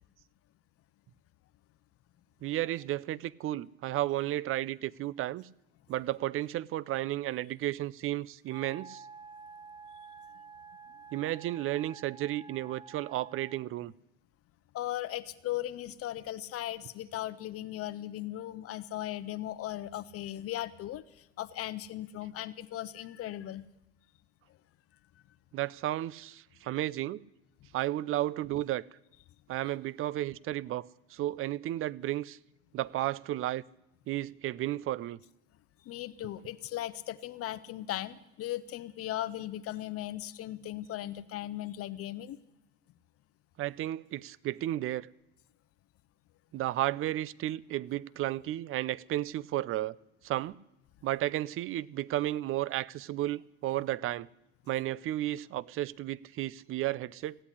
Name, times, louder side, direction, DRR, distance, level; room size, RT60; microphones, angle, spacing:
voice 1, 2.4-5.5 5.9-9.0 11.1-13.9 25.5-27.2 27.7-28.8 29.5-32.4 32.7-33.6 34.1-35.2 43.6-45.1 46.5-50.0 50.2-50.6 51.0-54.3 54.7-57.4, right 14 dB, 45° right, 0.6 m, -33 dB
Wind instrument woodwind instrument, 8.5-13.7, right 5 dB, 15° right, 0.8 m, -50 dB
voice 2, 14.7-23.7 35.8-42.4, left 13 dB, 50° left, 0.8 m, -37 dB
15.5 x 8.6 x 9.9 m
supercardioid pair, 90°, 30 cm